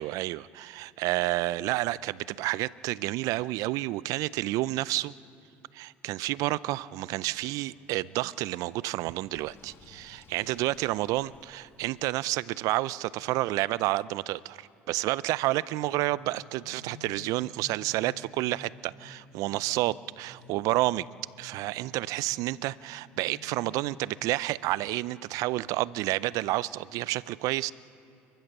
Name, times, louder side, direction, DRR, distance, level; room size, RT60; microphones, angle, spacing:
voice 1, 0.0-5.1 5.7-21.1 21.4-27.7, right 17 dB, 70° right, 20 dB, 0.5 m, -30 dB
Sink (filling or washing), 9.3-12.1, left 5 dB, 40° left, 2.2 m, -57 dB
sound 1, 15.8-24.1, left 3 dB, 90° left, 4.8 m, -53 dB
30.0 x 15.0 x 6.7 m, 2.8 s
supercardioid pair, 85°, 6 cm